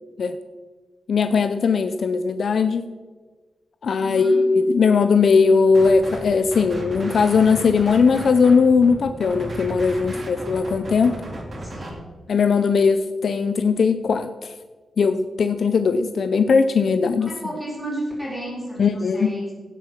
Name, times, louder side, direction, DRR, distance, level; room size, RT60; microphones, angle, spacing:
voice 1, 1.1-2.8 3.8-11.2 12.3-14.5 15.0-17.3 18.8-19.3, left 5 dB, 55° left, 9 dB, 0.6 m, -19 dB
voice 2, 4.0-4.5 10.0-10.3 11.6-12.0 17.2-19.5, equal, ahead, -4 dB, 4.1 m, -32 dB
sound 1, 5.7-6.2 6.5-11.9, right 1 dB, 35° right, 2.3 m, -34 dB
16.5 x 7.1 x 5.8 m, 1.4 s
wide cardioid pair, 175°, 0 cm